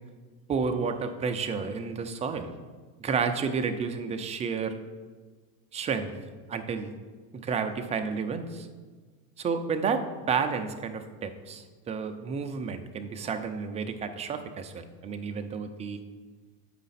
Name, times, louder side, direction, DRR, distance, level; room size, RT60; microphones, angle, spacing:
voice 1, 0.5-2.5 3.0-4.7 5.7-6.1 6.5-6.9 7.4-8.7 9.4-16.0, right 5 dB, 15° right, 7 dB, 0.3 m, -31 dB
8.4 x 4.9 x 4.1 m, 1.4 s
hypercardioid pair, 95°, 48 cm